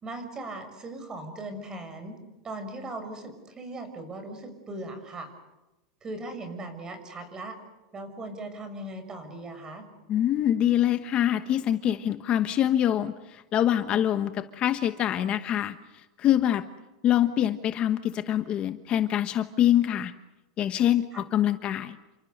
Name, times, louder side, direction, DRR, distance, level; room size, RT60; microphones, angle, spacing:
voice 1, 0.0-2.2 2.4-5.3 6.0-7.6 7.9-9.9 21.1-21.2, right 2 dB, 20° right, 8 dB, 6.3 m, -39 dB
voice 2, 10.1-15.8 16.2-16.6 17.0-20.1 20.6-22.0, left 11 dB, 30° left, 9 dB, 1.1 m, -25 dB
30.0 x 26.5 x 6.7 m, 1.0 s
supercardioid pair, 145°, 3 cm